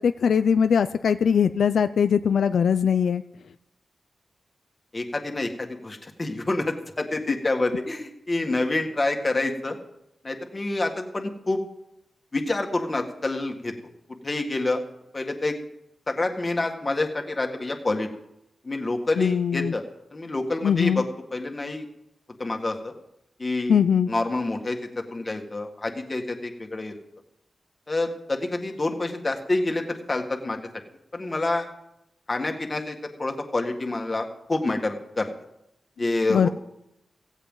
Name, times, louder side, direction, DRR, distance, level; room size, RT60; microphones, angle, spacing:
voice 1, 0.0-3.2 19.2-19.7 20.6-21.0 23.7-24.1 36.3-36.5, left 7 dB, 85° left, 11 dB, 0.5 m, -21 dB
voice 2, 4.9-9.8 10.2-11.6 12.3-13.7 14.2-14.8 15.1-15.5 16.1-18.1 18.6-19.8 20.1-21.0 21.3-21.9 22.4-22.9 23.4-23.8 24.1-26.9 27.9-30.6 31.1-31.7 32.3-35.3 36.0-36.5, left 2 dB, 25° left, 4 dB, 2.0 m, -27 dB
16.5 x 16.5 x 4.0 m, 0.83 s
wide cardioid pair, 125°, 0 cm